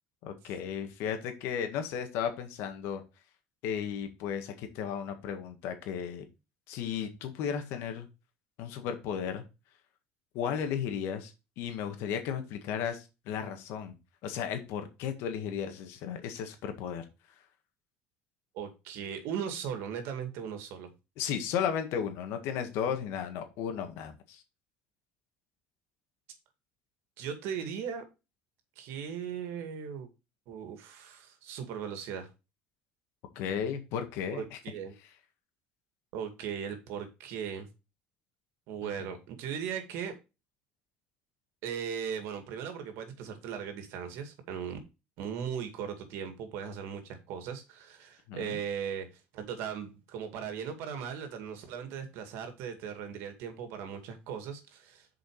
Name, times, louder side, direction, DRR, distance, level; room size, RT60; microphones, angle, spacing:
voice 1, 0.2-3.0 3.6-6.3 6.7-8.1 8.6-9.4 10.3-11.3 11.6-14.0 14.2-17.1 21.2-24.4 33.4-34.6 38.8-38.9 48.3-48.6, left 8 dB, 75° left, 7 dB, 1.8 m, -34 dB
voice 2, 18.5-20.9 27.2-28.0 28.8-30.1 30.5-32.3 34.3-35.0 36.1-37.7 38.7-40.1 41.6-44.8 45.2-49.1 49.3-55.1, right 7 dB, 75° right, 7 dB, 2.1 m, -38 dB
7.0 x 5.1 x 4.8 m, 0.27 s
supercardioid pair, 95°, 4 cm